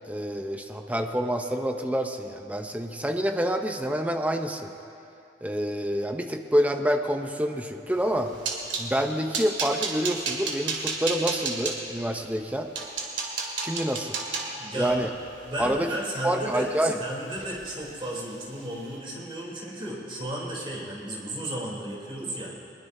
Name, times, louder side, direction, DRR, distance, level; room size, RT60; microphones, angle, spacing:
voice 1, 0.0-4.7 5.4-8.3 8.8-12.7 13.6-14.2 14.7-15.1 15.6-15.9 16.2-17.0, equal, 10° right, 5 dB, 0.7 m, -27 dB
sound 1, 8.0-8.9 9.3-11.8 12.4-12.5 12.7-16.9 17.3-17.7 18.0-18.2 18.6-18.8, right 4 dB, 80° right, 2.2 m, -33 dB
voice 2, 14.5-15.0 15.5-16.7 17.0-22.5, right 1 dB, 30° right, -4 dB, 3.3 m, -34 dB
21.5 x 21.0 x 2.7 m, 2.6 s
head